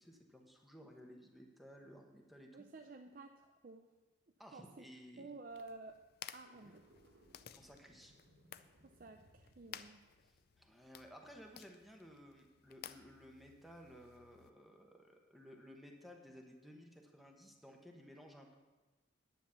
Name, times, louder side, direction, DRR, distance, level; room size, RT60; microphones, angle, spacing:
voice 1, 0.0-2.5 4.4-5.4 6.6-6.7 7.5-8.2 10.2-18.6, equal, ahead, 1 dB, 1.1 m, -57 dB
voice 2, 2.5-3.8 4.5-4.9 5.2-6.0 6.3-6.8 8.8-10.0, right 3 dB, 45° right, 5 dB, 0.5 m, -52 dB
sound 1, 5.5-14.5, left 9 dB, 50° left, 0.4 m, -56 dB
sound 2, 6.3-11.6, right 1 dB, 90° right, 1.5 m, -68 dB
10.0 x 9.3 x 5.7 m, 1.2 s
head